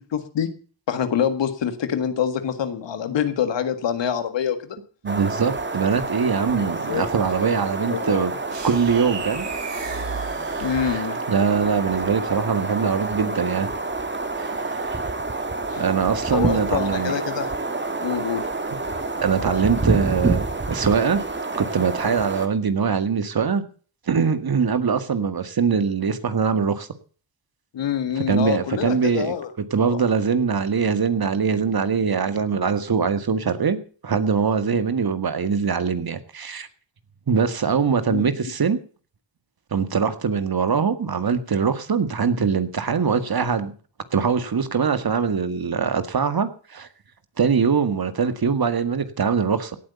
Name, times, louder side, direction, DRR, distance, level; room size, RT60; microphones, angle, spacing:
voice 1, 0.1-0.5 0.9-4.8 6.6-7.1 7.9-8.3 10.6-11.2 15.7-15.8 16.3-17.5 18.0-18.5 27.7-29.5 29.9-30.0 38.1-38.2, left 8 dB, 85° left, 10 dB, 1.8 m, -26 dB
voice 2, 5.0-8.3 8.6-9.5 10.8-11.0 11.3-13.7 14.4-15.0 15.8-17.1 19.2-21.2 21.6-23.6 24.1-26.9 28.2-29.3 29.7-33.8 34.0-36.7 37.3-38.8 39.7-43.7 44.1-46.9 47.4-49.8, right 6 dB, 55° right, 11 dB, 1.9 m, -22 dB
sound 1, 5.1-22.5, right 3 dB, 25° right, 1.9 m, -28 dB
sound 2, 8.5-11.4, right 6 dB, 85° right, 2.6 m, -36 dB
17.5 x 8.3 x 6.9 m, 0.41 s
cardioid pair, 50°, 42 cm